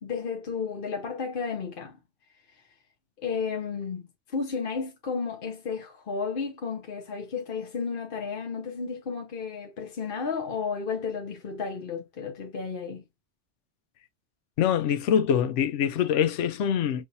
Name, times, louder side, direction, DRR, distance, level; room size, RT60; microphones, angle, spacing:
voice 1, 0.0-2.0 3.2-4.0 4.3-13.0, left 5 dB, 50° left, 1.0 m, -32 dB
voice 2, 14.6-17.1, left 8 dB, 80° left, 0.9 m, -24 dB
6.1 x 2.5 x 2.7 m
omnidirectional pair, 1.2 m